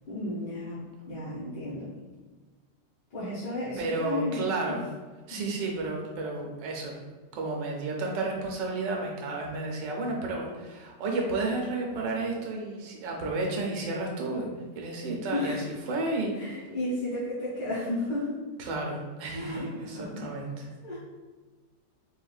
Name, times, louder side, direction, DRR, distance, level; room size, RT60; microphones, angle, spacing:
voice 1, 0.1-0.8 1.1-1.9 3.1-4.5 5.3-5.4 15.3-15.7 16.3-18.3 19.3-19.7 19.9-20.2 20.8-21.0, left 2 dB, 75° left, -10 dB, 1.5 m, -33 dB
voice 2, 3.8-4.8 5.3-6.9 7.3-14.5 14.7-16.5 18.6-20.7, right 2 dB, 75° right, 0 dB, 1.3 m, -32 dB
4.4 x 2.5 x 2.3 m, 1.3 s
omnidirectional pair, 1.9 m